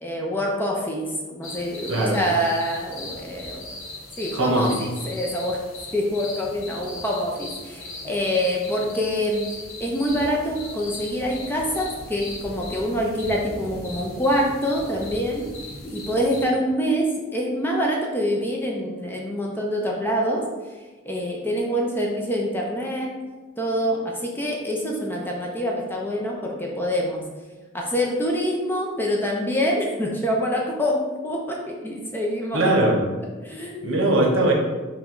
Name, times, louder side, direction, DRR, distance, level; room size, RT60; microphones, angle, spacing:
voice 1, 0.0-3.6 4.2-5.6 5.9-9.4 9.8-15.5 15.8-20.4 21.0-23.1 23.6-27.2 27.7-32.6 33.4-34.1, equal, 10° left, -1 dB, 0.5 m, -25 dB
sound 1, 1.4-16.5, left 2 dB, 85° left, 0.8 m, -38 dB
voice 2, 4.3-4.8 32.5-33.0 33.8-34.5, right 2 dB, 75° right, 1 dB, 0.8 m, -20 dB
4.9 x 2.2 x 3.8 m, 1.3 s
head